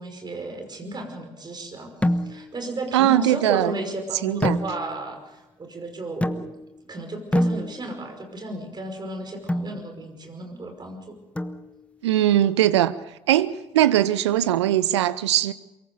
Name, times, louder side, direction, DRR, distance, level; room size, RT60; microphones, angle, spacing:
voice 1, 0.0-1.9 2.3-6.4 6.9-11.2, right 2 dB, 30° right, 5.6 m, -33 dB
sound 1, 2.0-2.6 4.4-5.2 6.2-6.8 7.3-8.1 9.5-9.8 11.4-12.0, left 1 dB, 10° left, 1.3 m, -27 dB
voice 2, 2.9-3.7 4.2-4.6 12.0-12.9 13.3-15.5, right 12 dB, 75° right, 0.8 m, -20 dB
23.5 x 22.5 x 5.3 m
figure-of-eight pair, 50°, 15 cm